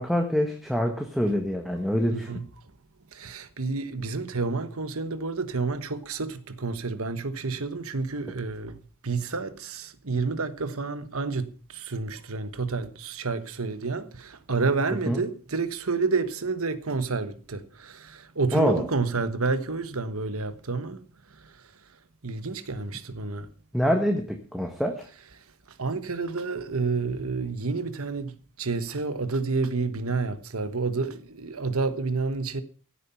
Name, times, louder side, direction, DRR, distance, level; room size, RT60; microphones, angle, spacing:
voice 1, 0.0-2.3 15.1-15.2 18.5-18.8 23.7-25.0, equal, ahead, 1.4 m, -25 dB
voice 2, 2.1-2.5 3.1-21.6 22.2-23.5 25.7-32.6, right 4 dB, 70° right, 1.3 m, -30 dB
16.0 x 8.3 x 5.7 m
head